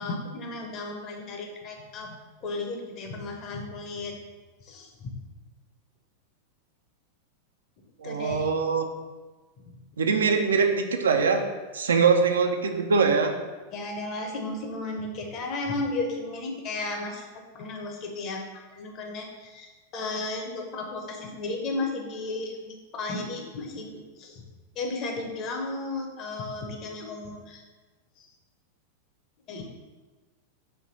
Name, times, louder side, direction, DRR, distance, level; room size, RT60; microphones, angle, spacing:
voice 1, 0.0-2.1 2.4-4.2 4.6-5.1 8.0-8.5 9.6-9.8 13.7-17.3 17.5-24.4 24.7-27.6 28.2-28.3 29.5-29.6, left 2 dB, 35° left, 2 dB, 0.6 m, -34 dB
voice 2, 8.0-8.9 10.0-11.5 11.7-13.4, right 5 dB, 70° right, 5 dB, 0.3 m, -23 dB
3.3 x 2.6 x 3.9 m, 1.3 s
figure-of-eight pair, 90°, 0 cm